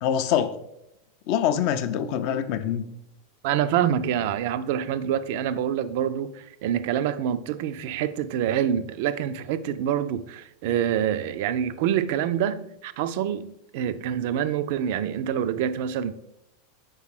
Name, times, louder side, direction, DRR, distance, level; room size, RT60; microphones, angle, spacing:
voice 1, 0.0-0.6 1.3-2.8, left 9 dB, 50° left, 0.4 m, -24 dB
voice 2, 3.4-16.1, right 9 dB, 50° right, 0.3 m, -26 dB
6.1 x 4.8 x 3.2 m
figure-of-eight pair, 90°, 0 cm